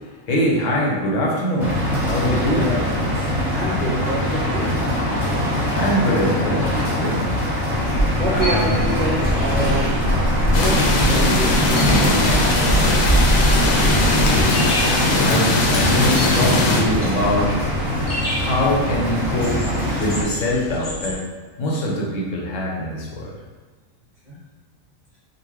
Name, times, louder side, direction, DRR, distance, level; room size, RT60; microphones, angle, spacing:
voice 1, 0.0-2.7 5.8-7.2 8.3-8.8 14.5-14.8 15.2-17.5 18.4-21.2 21.6-23.3, equal, 70° left, -3 dB, 1.1 m, -23 dB
sound 1, 1.6-20.2, left 1 dB, ahead, 1.4 m, -23 dB
voice 2, 2.2-4.8 8.2-10.0 10.5-12.9 24.3-24.4, right 1 dB, 45° right, -7 dB, 0.6 m, -28 dB
sound 2, 7.7-21.1, equal, 45° left, 1.0 m, -25 dB
sound 3, 10.5-16.8, left 2 dB, 90° left, 1.0 m, -20 dB
4.0 x 2.4 x 3.0 m, 1.3 s
omnidirectional pair, 1.4 m